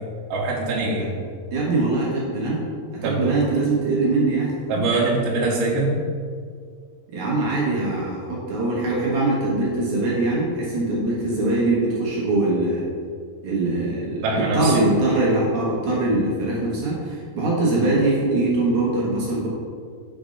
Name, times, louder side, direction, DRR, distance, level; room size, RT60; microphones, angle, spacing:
voice 1, 0.3-1.1 3.0-3.2 4.7-5.9 14.2-14.7, right 2 dB, 80° right, -4 dB, 2.9 m, -23 dB
voice 2, 1.5-2.6 2.9-4.5 7.1-12.8 13.4-19.5, right 2 dB, 60° right, -6 dB, 2.1 m, -22 dB
6.4 x 4.4 x 5.3 m, 2.1 s
omnidirectional pair, 4.9 m